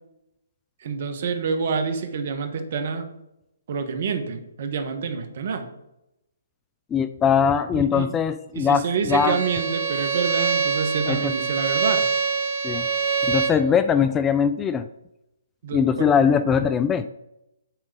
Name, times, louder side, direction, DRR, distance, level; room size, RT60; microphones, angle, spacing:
voice 1, 0.8-3.1 3.7-5.7 7.7-8.1 8.5-12.1 15.6-16.1, right 5 dB, 50° right, 7 dB, 1.2 m, -27 dB
voice 2, 6.9-9.4 11.1-11.3 12.6-12.9 13.2-14.9 15.7-17.1, left 7 dB, 15° left, 11 dB, 0.3 m, -21 dB
Bowed string instrument, 9.1-13.6, right 5 dB, 90° right, 2.3 m, -24 dB
9.1 x 3.6 x 5.3 m, 0.86 s
hypercardioid pair, 135°, 0 cm